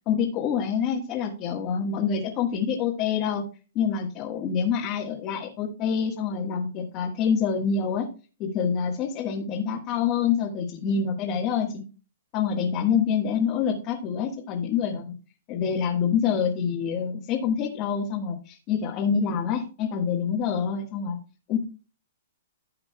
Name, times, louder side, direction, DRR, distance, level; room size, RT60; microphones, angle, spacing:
voice 1, 0.0-3.4 3.7-8.1 8.4-11.8 12.3-15.1 15.5-21.2 21.5-21.6, left 7 dB, 25° left, -2 dB, 1.5 m, -26 dB
16.0 x 7.7 x 2.3 m, 0.35 s
hypercardioid pair, 165°, 0 cm